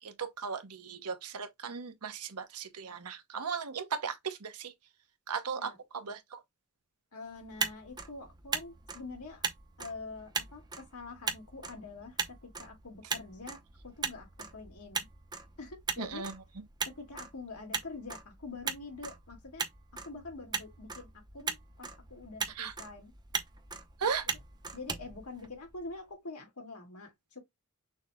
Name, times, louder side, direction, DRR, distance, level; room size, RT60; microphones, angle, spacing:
voice 1, 0.0-4.7 5.3-6.4 16.0-16.3 22.5-22.7 24.0-24.3, right 6 dB, 90° right, 0.9 m, -37 dB
voice 2, 7.1-9.4 9.8-13.6 13.8-15.1 15.6-16.2 16.9-19.7 20.1-23.1 24.7-27.4, left 3 dB, 85° left, 2.1 m, -45 dB
Motor vehicle (road), 7.4-25.9, right 5 dB, 20° right, 0.5 m, -40 dB
6.3 x 2.2 x 3.4 m
head